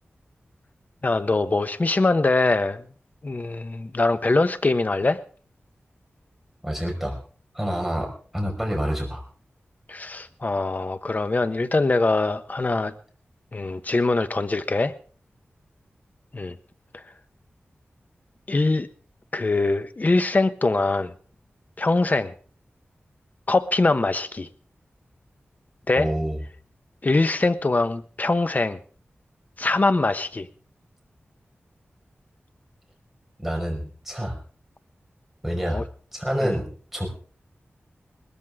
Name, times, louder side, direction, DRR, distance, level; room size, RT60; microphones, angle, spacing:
voice 1, 1.0-2.8 3.2-5.2 9.9-12.9 13.5-14.9 16.3-16.6 16.9-17.0 18.5-18.9 19.3-21.1 21.8-22.3 23.5-24.5 25.9-26.1 27.0-28.8 29.6-30.5 35.6-35.8 36.4-36.6, left 2 dB, 40° left, 11 dB, 1.1 m, -23 dB
voice 2, 6.6-7.2 7.5-9.2 26.0-26.4 33.4-34.4 35.4-35.8 36.1-37.1, equal, 5° right, 0 dB, 5.3 m, -27 dB
20.0 x 14.0 x 3.7 m, 0.43 s
wide cardioid pair, 90°, 4 cm